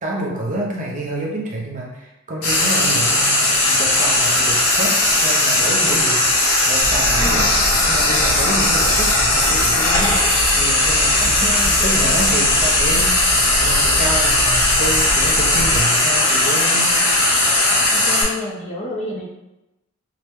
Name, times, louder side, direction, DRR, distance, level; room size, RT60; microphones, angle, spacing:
voice 1, 0.0-7.5 7.8-13.3 13.6-16.9, right 1 dB, 35° right, -3 dB, 0.6 m, -28 dB
Frying (food), 2.4-18.2, left 2 dB, 85° left, 0.8 m, -17 dB
sound 1, 6.8-15.8, equal, 20° right, 0.9 m, -28 dB
voice 2, 7.2-7.6 11.2-12.1 17.9-19.3, left 1 dB, 35° left, -3 dB, 0.5 m, -30 dB
2.8 x 2.1 x 3.3 m, 0.94 s
head